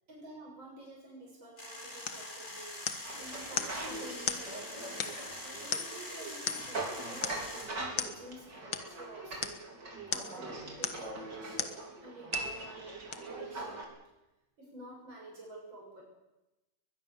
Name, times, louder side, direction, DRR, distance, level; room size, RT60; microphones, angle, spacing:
voice 1, 0.1-9.7 10.1-13.9 14.6-16.0, right 1 dB, 85° right, -2 dB, 7.6 m, -50 dB
sound 1, 1.6-7.6, left 1 dB, 45° left, 6.2 m, -44 dB
sound 2, 2.1-2.3 2.9-3.2 3.6-3.8 4.3-4.5 5.0-5.3 5.7-6.1 6.5-6.8 7.2-7.5 8.0-8.2 8.7-8.9 9.4-9.6 10.1-10.4 10.8-11.1 11.6-11.8 12.3-12.6 13.1-13.2, left 7 dB, 80° left, 2.2 m, -36 dB
sound 3, 3.0-13.8, right 2 dB, 60° right, 4.6 m, -42 dB
21.5 x 21.5 x 7.2 m, 0.97 s
omnidirectional pair, 2.1 m